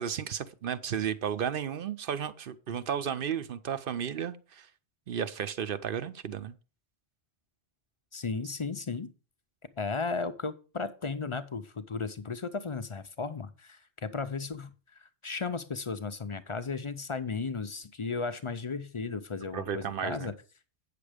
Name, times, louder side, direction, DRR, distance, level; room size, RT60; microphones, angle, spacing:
voice 1, 0.0-4.7 5.1-6.5 19.5-20.3, right 8 dB, 60° right, 0.8 m, -33 dB
voice 2, 8.1-9.1 9.8-14.7 15.0-20.3, left 4 dB, 35° left, 0.5 m, -35 dB
8.9 x 6.8 x 5.0 m
omnidirectional pair, 1.1 m